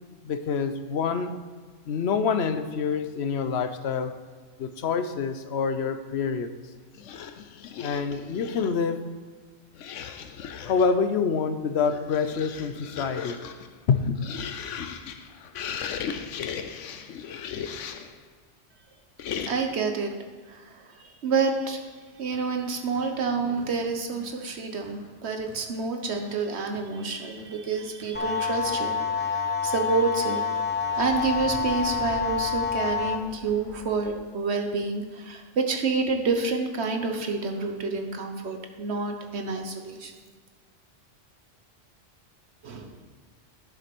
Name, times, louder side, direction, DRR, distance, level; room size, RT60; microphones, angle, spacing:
voice 1, 0.2-1.4 1.9-4.2 4.6-6.5 7.8-9.0 10.7-13.4 13.9-14.2, left 5 dB, 65° left, 10 dB, 1.0 m, -26 dB
sound 1, 6.9-8.9 9.7-11.0 11.7-18.2 19.2-19.9, left 7 dB, 85° left, 1.0 m, -37 dB
voice 2, 19.5-20.1 20.5-21.9 22.2-30.5 30.9-40.1 42.6-43.0, right 4 dB, 65° right, 4 dB, 1.4 m, -28 dB
sound 2, 22.1-29.1 30.1-34.1, right 1 dB, 25° right, 2.5 m, -47 dB
sound 3, 28.1-33.1, left 6 dB, 10° left, 0.6 m, -27 dB
10.5 x 7.5 x 6.1 m, 1.5 s
omnidirectional pair, 1.2 m